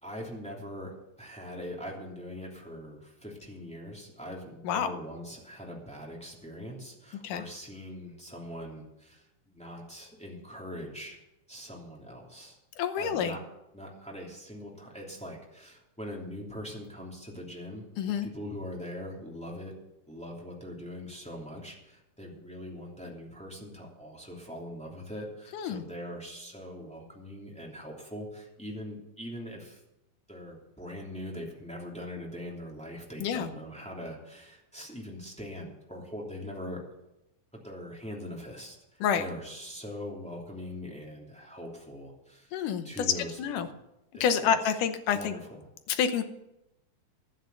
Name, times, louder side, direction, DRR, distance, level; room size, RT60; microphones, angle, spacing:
voice 1, 0.0-11.2 11.5-12.6 13.0-13.4 13.7-17.9 18.2-19.7 20.1-29.8 30.3-36.8 37.5-42.5 42.8-43.4 43.7-43.8 44.1-44.7 45.1-45.6, equal, ahead, -2 dB, 2.3 m, -42 dB
voice 2, 12.8-13.4 18.0-18.3 25.5-25.8 33.2-33.5 39.0-39.2 42.5-42.9 43.4-43.7 44.2-45.3 45.9-46.2, left 8 dB, 75° left, 8 dB, 2.4 m, -28 dB
12.0 x 9.2 x 6.9 m, 0.88 s
omnidirectional pair, 3.9 m